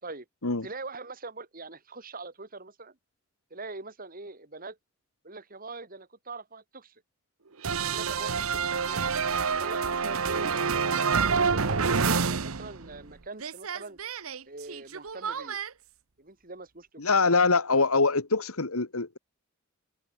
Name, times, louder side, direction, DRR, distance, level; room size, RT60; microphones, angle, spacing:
voice 1, 0.6-3.0 3.5-4.8 5.2-7.0 7.8-9.0 9.6-11.8 12.2-14.0 14.4-15.6 16.2-17.0, right 3 dB, 40° right, 3.2 m, -43 dB
sound 1, 7.6-13.1 13.4-15.7, right 5 dB, 75° right, 1.1 m, -28 dB
voice 2, 17.0-19.2, left 4 dB, 85° left, 2.0 m, -24 dB
head